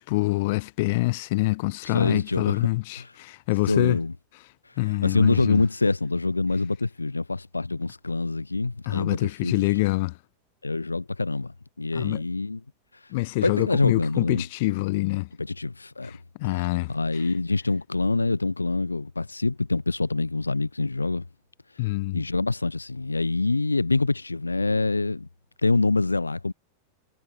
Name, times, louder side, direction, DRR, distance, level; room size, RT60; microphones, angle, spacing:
voice 1, 0.0-4.0 4.8-5.6 8.9-10.1 11.9-12.2 13.1-15.3 16.4-16.9 21.8-22.2, left 22 dB, 50° left, 0.8 m, -25 dB
voice 2, 1.8-2.6 3.0-3.1 3.7-4.1 5.0-9.6 10.6-12.6 13.4-14.4 15.4-16.2 16.6-21.2 21.8-25.3 25.6-26.5, left 3 dB, 80° left, 0.5 m, -25 dB
figure-of-eight pair, 90°, 0 cm